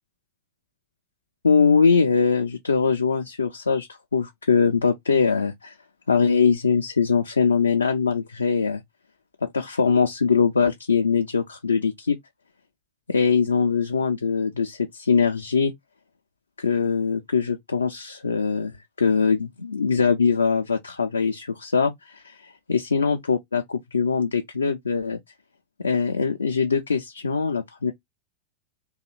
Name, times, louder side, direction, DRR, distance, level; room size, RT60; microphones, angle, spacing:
voice 1, 1.4-3.9 4.1-5.7 6.1-8.8 9.4-12.2 13.1-15.7 16.6-25.2 25.8-27.9, left 5 dB, 75° left, 0.4 m, -22 dB
2.9 x 2.3 x 4.2 m
figure-of-eight pair, 90°, 0 cm